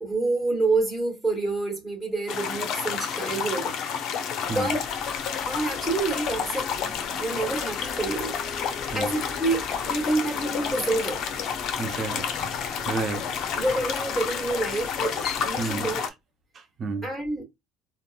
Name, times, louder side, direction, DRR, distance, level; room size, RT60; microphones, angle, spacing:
voice 1, 0.0-3.9 4.5-4.8 5.5-6.7 7.2-8.3 8.9-11.2 13.5-16.1 17.0-17.4, right 2 dB, 5° right, 1.3 m, -28 dB
sound 1, 2.3-16.1, left 7 dB, 60° left, 0.6 m, -30 dB
sound 2, 4.4-16.0, left 4 dB, 35° left, 1.3 m, -42 dB
voice 2, 11.8-12.3 12.9-13.3 15.6-15.9 16.5-17.1, right 4 dB, 40° right, 0.7 m, -30 dB
3.7 x 2.1 x 2.3 m
supercardioid pair, 100°, 0 cm